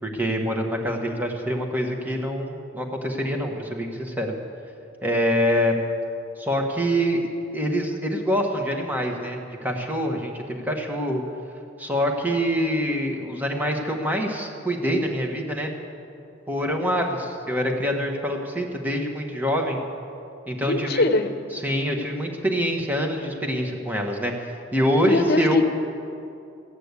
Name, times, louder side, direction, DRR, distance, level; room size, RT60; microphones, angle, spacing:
voice 1, 0.0-4.3 5.0-5.7 6.4-11.2 11.8-15.7 16.5-19.8 20.5-21.0 21.5-24.3 24.7-25.6, equal, 10° right, 2 dB, 1.4 m, -25 dB
voice 2, 20.6-21.3 25.1-25.6, left 2 dB, 55° left, 9 dB, 0.9 m, -21 dB
14.5 x 8.9 x 8.3 m, 2.6 s
head